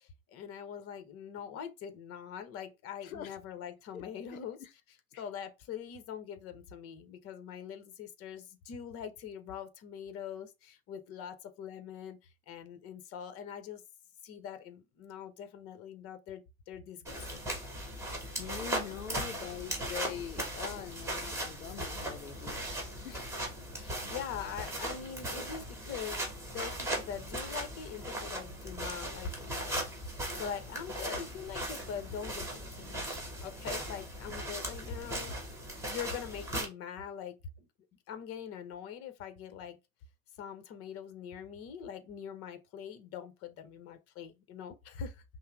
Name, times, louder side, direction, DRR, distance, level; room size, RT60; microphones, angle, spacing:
voice 1, 0.0-4.6 5.2-13.8 14.2-17.5 23.8-26.2 26.5-33.0 33.4-35.4 35.9-37.4 38.1-39.8 40.4-45.2, left 7 dB, 35° left, 0.8 m, -43 dB
voice 2, 3.0-3.4 3.9-4.0 4.3-4.7 5.1-5.2 18.4-22.7 23.0-23.3, left 9 dB, 90° left, 0.5 m, -43 dB
sound 1, 17.0-36.7, right 1 dB, 5° right, 1.4 m, -38 dB
5.4 x 2.0 x 3.4 m
hypercardioid pair, 95°, 41 cm